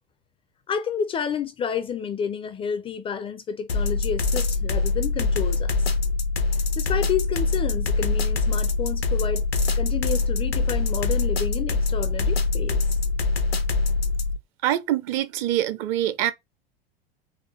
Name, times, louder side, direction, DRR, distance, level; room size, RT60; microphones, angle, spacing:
voice 1, 0.7-5.9 6.5-9.4 9.8-13.0, left 7 dB, 20° left, 0.4 m, -30 dB
sound 1, 3.7-14.4, left 3 dB, 85° left, 0.7 m, -24 dB
voice 2, 14.6-16.3, right 12 dB, 40° right, 0.6 m, -24 dB
3.9 x 3.0 x 3.1 m
figure-of-eight pair, 80°, 29 cm